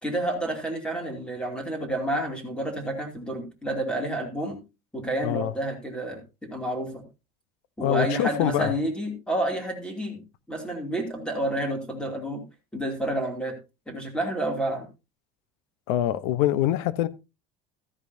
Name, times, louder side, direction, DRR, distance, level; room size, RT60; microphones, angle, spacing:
voice 1, 0.0-4.6 4.9-7.0 7.8-10.2 10.5-12.4 12.7-13.5 13.9-14.9, right 1 dB, 5° left, 2.7 m, -29 dB
voice 2, 7.8-8.7 15.9-17.1, left 12 dB, 80° left, 0.9 m, -24 dB
14.0 x 10.5 x 2.7 m
cardioid pair, 160°, 19 cm